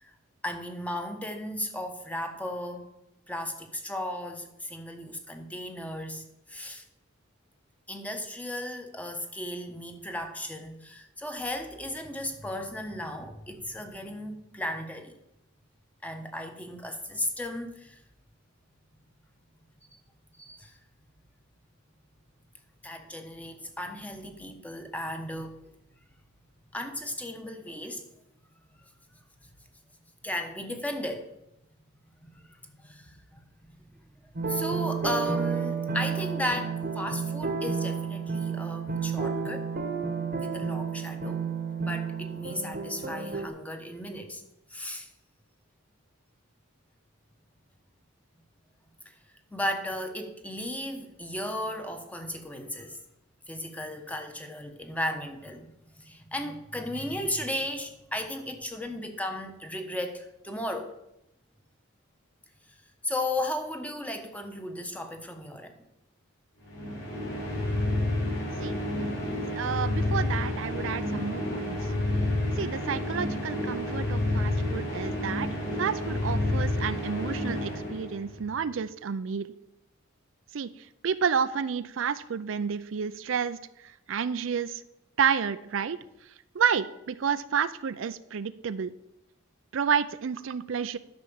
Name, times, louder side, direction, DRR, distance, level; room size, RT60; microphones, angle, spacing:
voice 1, 0.4-2.9 3.3-6.8 7.9-15.2 16.0-18.0 20.4-20.7 22.8-25.6 26.7-28.0 28.8-28.9 30.2-31.3 32.2-33.4 33.7-33.8 34.5-39.7 40.4-41.4 41.8-44.4 44.7-45.1 49.0-49.1 49.5-53.0 53.5-55.7 56.0-61.0 62.7-62.8 63.0-65.7, left 1 dB, 5° left, 6 dB, 1.1 m, -35 dB
sound 1, 34.4-43.5, right 5 dB, 45° right, 1.1 m, -31 dB
sound 2, 66.7-78.5, left 1 dB, 60° left, 5.0 m, -30 dB
voice 2, 69.5-71.8 72.6-75.5 75.8-79.5 80.5-80.7 81.0-83.6 83.8-84.8 85.2-86.0 86.5-88.9 89.7-91.0, right 7 dB, 65° right, 13 dB, 0.4 m, -30 dB
10.5 x 6.1 x 7.0 m, 0.86 s
head